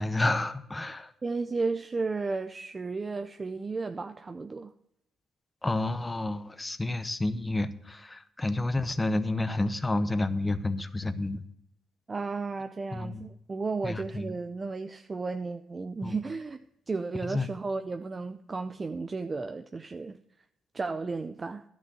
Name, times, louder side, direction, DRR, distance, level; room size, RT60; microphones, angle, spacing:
voice 1, 0.0-1.1 5.6-11.4 12.9-13.3 13.8-14.3 16.0-16.2 17.2-17.5, left 2 dB, 15° left, 0.8 m, -30 dB
voice 2, 1.2-4.7 12.1-16.6 16.9-20.1 20.7-21.6, right 3 dB, 30° right, 0.5 m, -33 dB
11.5 x 6.2 x 7.7 m
cardioid pair, 90°, 0 cm